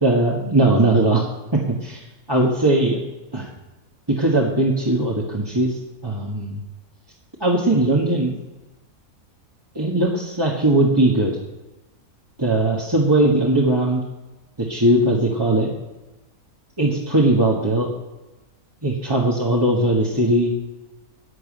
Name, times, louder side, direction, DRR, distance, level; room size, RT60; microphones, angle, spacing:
voice 1, 0.0-1.2 1.8-2.0 2.3-3.0 3.3-3.5 4.1-5.7 6.0-6.6 7.4-8.4 9.7-11.3 12.4-14.0 14.6-15.7 16.8-17.9 18.8-20.5, right 1 dB, 15° right, -4 dB, 1.6 m, -19 dB
11.5 x 7.4 x 8.7 m, 1.1 s
omnidirectional pair, 1.6 m